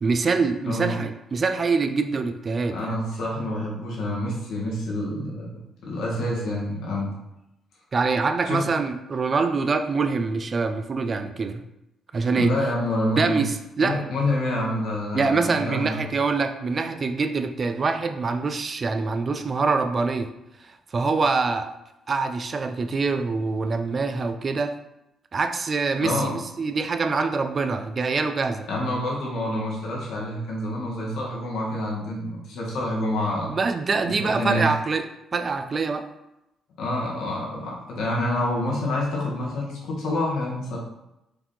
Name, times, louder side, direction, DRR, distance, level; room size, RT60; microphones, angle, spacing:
voice 1, 0.0-2.9 7.9-11.6 12.1-12.5 13.2-14.0 15.1-20.3 20.7-21.7 22.1-24.8 25.3-28.7 33.5-35.1 35.3-36.1, right 4 dB, 40° right, 8 dB, 0.4 m, -25 dB
voice 2, 0.6-1.0 2.7-5.5 5.8-7.1 8.4-8.6 12.4-13.4 13.8-16.0 26.0-26.3 28.7-33.5 34.0-34.7 36.8-40.8, left 1 dB, 75° left, -4 dB, 1.4 m, -27 dB
4.7 x 2.6 x 3.7 m, 0.88 s
cardioid pair, 90°, 0 cm